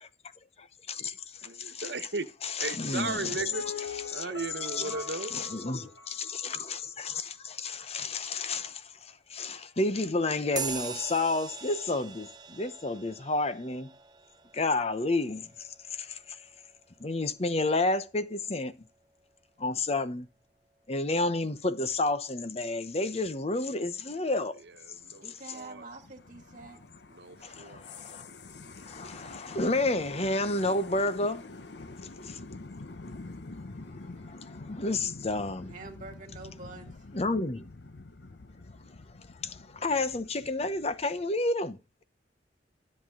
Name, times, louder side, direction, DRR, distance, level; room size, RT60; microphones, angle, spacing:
voice 1, 0.9-1.8 2.6-3.2 4.1-4.2 4.8-4.9 5.3-13.9 14.5-16.4 17.0-18.8 19.6-20.3 20.9-24.6 27.4-28.3 28.9-31.5 32.2-32.4 34.3-35.7 37.1-37.7 39.4-42.0, left 2 dB, 35° left, 0.8 m, -31 dB
voice 2, 1.4-2.3 2.6-3.7 4.1-5.3 24.6-25.9 27.1-27.8, right 3 dB, 65° right, 1.3 m, -36 dB
Piano, 3.0-6.8 7.0-7.1, left 4 dB, 90° left, 5.7 m, -43 dB
sound 1, 10.6-18.5, right 6 dB, 20° right, 0.8 m, -43 dB
sound 2, 24.7-41.2, left 3 dB, 65° left, 0.9 m, -47 dB
voice 3, 25.2-26.8 35.7-37.0, right 3 dB, 45° right, 2.0 m, -46 dB
13.0 x 7.6 x 3.7 m
head